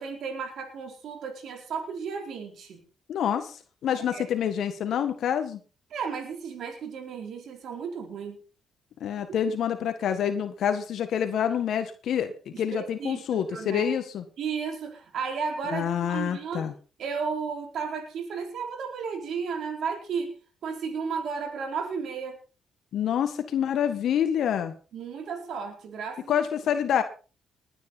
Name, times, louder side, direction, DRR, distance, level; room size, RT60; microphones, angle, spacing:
voice 1, 0.0-2.8 4.1-4.2 5.9-8.4 12.5-13.8 14.4-16.7 17.0-20.3 20.6-22.4 24.9-26.4, right 5 dB, 70° right, 4 dB, 4.4 m, -34 dB
voice 2, 3.1-5.6 9.0-14.2 15.7-16.7 22.9-24.7 26.3-27.0, left 9 dB, 70° left, 8 dB, 1.6 m, -27 dB
20.0 x 9.8 x 4.2 m, 0.35 s
cardioid pair, 90°, 0 cm